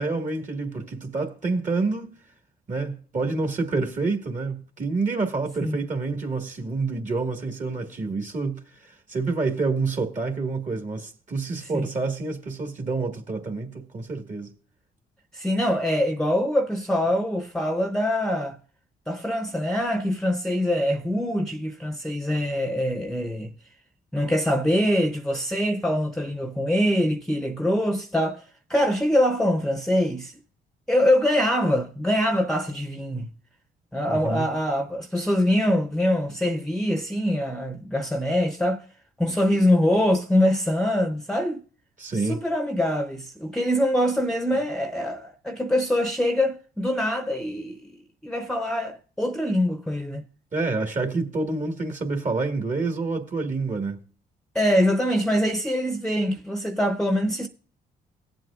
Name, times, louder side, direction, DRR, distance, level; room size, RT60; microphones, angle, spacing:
voice 1, 0.0-2.1 2.7-14.5 34.0-34.5 42.0-42.4 44.5-44.6 50.5-54.0, right 3 dB, 40° right, 1.6 m, -28 dB
voice 2, 15.3-18.6 19.1-23.5 24.1-28.4 28.7-30.3 30.9-33.3 33.9-38.8 39.2-41.6 42.1-47.9 48.2-50.2 54.5-57.5, equal, 5° left, 0.8 m, -24 dB
18.0 x 7.7 x 2.4 m
supercardioid pair, 60°, 19 cm